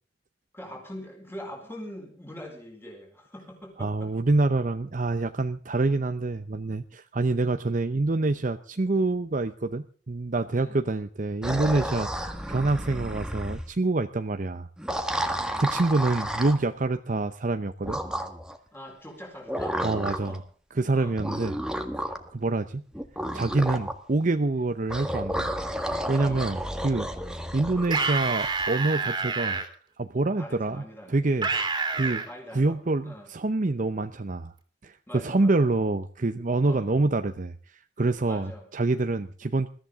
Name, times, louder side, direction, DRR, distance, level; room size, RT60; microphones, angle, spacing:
voice 1, 0.5-4.1 10.5-10.8 15.1-15.8 18.7-19.8 20.2-20.4 20.9-21.2 26.1-26.5 30.4-31.2 32.3-32.8 33.0-33.3 35.1-35.7 36.6-36.9 38.3-38.7, equal, 15° left, 1 dB, 4.4 m, -43 dB
voice 2, 3.8-14.7 15.6-18.0 19.8-20.4 20.8-21.6 22.3-22.8 23.3-25.5 26.1-26.6 26.8-29.6 30.0-30.8 31.1-31.5 31.9-32.2 32.5-34.5 34.8-39.7, right 2 dB, 45° right, 8 dB, 0.7 m, -26 dB
sound 1, 11.4-13.7 14.8-16.6 17.8-18.6 19.5-20.4 21.2-22.3 22.9-24.0 24.9-28.7, equal, 5° right, 1.5 m, -32 dB
sound 2, 27.8-29.6 31.4-32.3, right 4 dB, 25° right, 2.9 m, -27 dB
21.5 x 14.0 x 3.7 m, 0.43 s
head